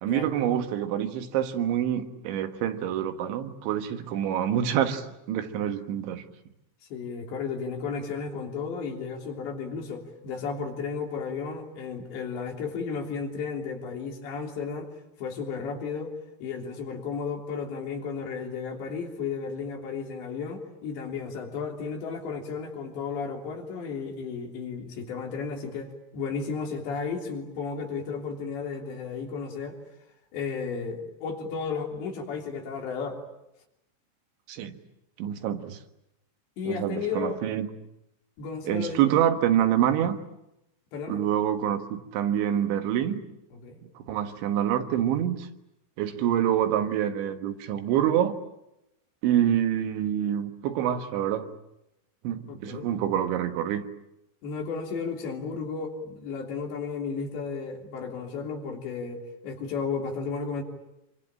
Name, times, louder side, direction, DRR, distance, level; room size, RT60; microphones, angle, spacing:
voice 1, 0.0-6.2 34.5-34.7 35.2-35.8 36.7-37.7 38.7-40.2 41.1-43.2 44.0-45.5 46.0-48.4 49.2-51.5 52.3-53.8, right 10 dB, 85° right, 8 dB, 3.8 m, -26 dB
voice 2, 6.9-14.9 15.2-16.2 16.4-29.8 30.3-33.2 36.6-37.4 38.4-39.0 40.9-41.2 43.5-43.8 52.5-52.9 54.4-60.6, left 5 dB, 75° left, 2 dB, 5.5 m, -33 dB
27.0 x 25.0 x 8.9 m, 0.86 s
omnidirectional pair, 5.2 m